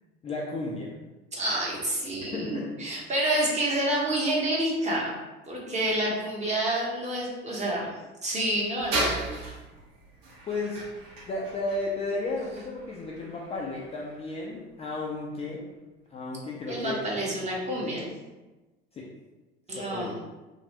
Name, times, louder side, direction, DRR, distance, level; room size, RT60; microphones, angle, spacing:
voice 1, 0.2-0.9 2.3-2.7 10.5-10.9 11.3-15.7 16.1-17.2 17.7-18.1 18.9-19.1 19.7-20.2, left 2 dB, 20° left, -3 dB, 0.4 m, -34 dB
voice 2, 1.3-5.1 5.5-7.9 8.2-9.2 16.7-18.1 19.7-20.1, right 1 dB, 20° right, -4 dB, 1.0 m, -28 dB
sound 1, 8.8-15.5, right 1 dB, 60° right, 1.5 m, -36 dB
2.9 x 2.5 x 2.9 m, 1.1 s
figure-of-eight pair, 70°, 32 cm